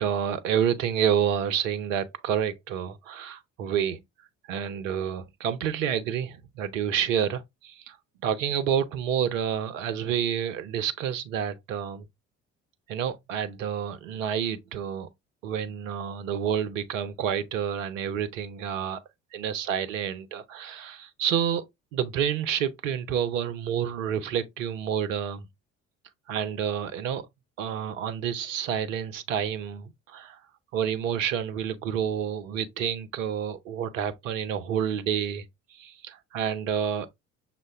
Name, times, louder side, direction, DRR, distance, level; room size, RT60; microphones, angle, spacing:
voice 1, 0.0-4.0 4.5-8.0 8.2-12.0 12.9-15.1 15.4-19.0 19.3-21.6 21.9-25.4 26.3-27.2 27.6-30.4 30.7-35.4 35.7-37.1, right 8 dB, 75° right, 0.7 m, -29 dB
6.4 x 2.3 x 3.4 m
figure-of-eight pair, 55°, 39 cm